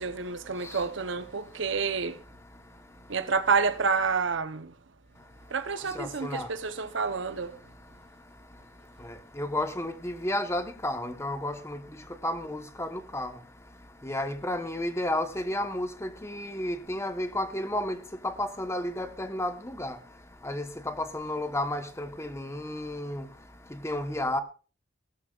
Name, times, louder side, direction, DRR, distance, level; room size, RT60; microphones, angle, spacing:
voice 1, 0.0-2.2 3.1-4.7 5.5-7.6, right 5 dB, 75° right, 0.9 m, -29 dB
voice 2, 5.9-6.5 9.4-11.8 12.2-13.3 14.0-18.0 18.2-20.0 20.4-23.2 23.8-24.4, left 1 dB, 15° left, 1.1 m, -32 dB
18.5 x 13.0 x 2.5 m
head